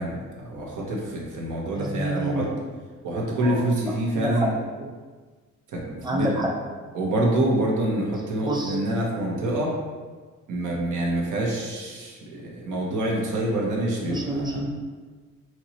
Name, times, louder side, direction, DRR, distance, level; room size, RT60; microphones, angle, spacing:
voice 1, 0.0-2.5 3.0-4.5 5.7-6.4 6.9-9.8 10.5-14.6, right 1 dB, 80° right, -2 dB, 1.1 m, -26 dB
voice 2, 1.7-2.6 3.4-3.7 4.1-4.5 4.8-4.9 6.0-6.5 8.4-8.8 14.1-14.7, right 1 dB, 15° right, 0 dB, 0.8 m, -28 dB
5.8 x 3.0 x 2.9 m, 1.4 s
cardioid pair, 90°, 30 cm